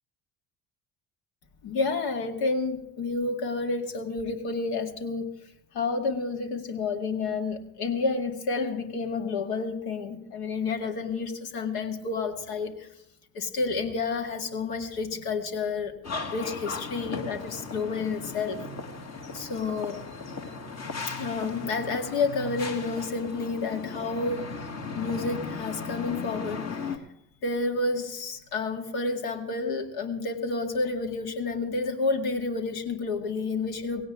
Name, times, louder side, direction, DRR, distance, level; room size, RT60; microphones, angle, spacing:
voice 1, 1.6-5.3 5.7-12.9 13.3-16.0 16.3-18.7 19.3-20.0 21.2-24.5 25.0-27.0 27.4-34.1, left 4 dB, 65° left, 4 dB, 2.1 m, -30 dB
sound 1, 16.0-27.0, left 4 dB, 40° left, 2.0 m, -37 dB
17.5 x 17.0 x 3.7 m, 0.79 s
hypercardioid pair, 60°, 40 cm